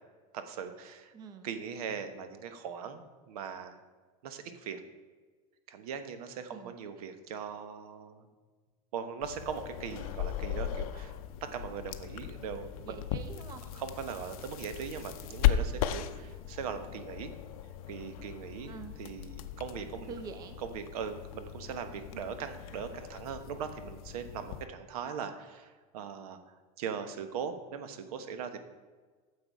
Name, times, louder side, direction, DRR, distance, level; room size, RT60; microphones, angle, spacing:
voice 1, 0.3-1.1 1.4-3.8 4.2-4.8 5.7-8.3 8.9-13.0 13.7-17.3 17.9-20.1 20.6-28.6, right 7 dB, 85° right, 9 dB, 1.2 m, -40 dB
voice 2, 1.1-1.5 6.5-6.7 12.9-13.6 18.7-18.9 20.1-20.6, right 5 dB, 20° right, 8 dB, 0.6 m, -45 dB
sound 1, 9.2-24.7, left 10 dB, 75° left, 0.7 m, -37 dB
9.7 x 6.9 x 4.7 m, 1.4 s
supercardioid pair, 175°, 19 cm